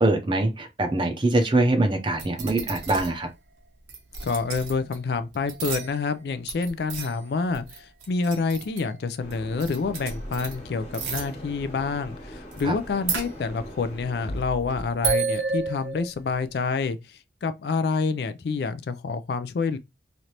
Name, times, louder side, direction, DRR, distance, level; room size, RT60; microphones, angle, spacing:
voice 1, 0.0-3.3 12.6-12.7, right 2 dB, 25° right, 0.5 m, -23 dB
sound 1, 2.2-3.2 3.9-5.0 5.3-6.2 6.5-9.0 9.3-9.4 9.6-10.6 10.9-11.3 12.5-12.6 12.9-13.8 14.2-16.3, right 4 dB, 80° right, 0.9 m, -31 dB
voice 2, 4.2-19.8, left 4 dB, 65° left, 0.3 m, -28 dB
sound 2, 9.2-14.4, equal, 35° left, 1.3 m, -41 dB
3.2 x 2.6 x 2.8 m
head